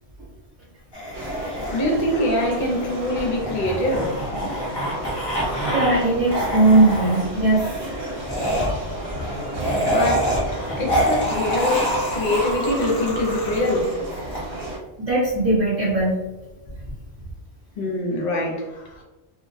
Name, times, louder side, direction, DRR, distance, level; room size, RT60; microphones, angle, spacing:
sound 1, 0.9-6.0 6.3-7.2 8.2-14.4, equal, 30° left, 0.5 m, -26 dB
sound 2, 1.1-14.8, right 1 dB, 65° right, 0.8 m, -33 dB
voice 1, 1.7-4.1 8.2-8.3 9.9-13.9 17.8-19.0, left 1 dB, 60° left, 0.8 m, -24 dB
voice 2, 5.7-7.7 15.0-16.1, right 2 dB, 35° right, 0.8 m, -18 dB
2.2 x 2.0 x 2.6 m
omnidirectional pair, 1.2 m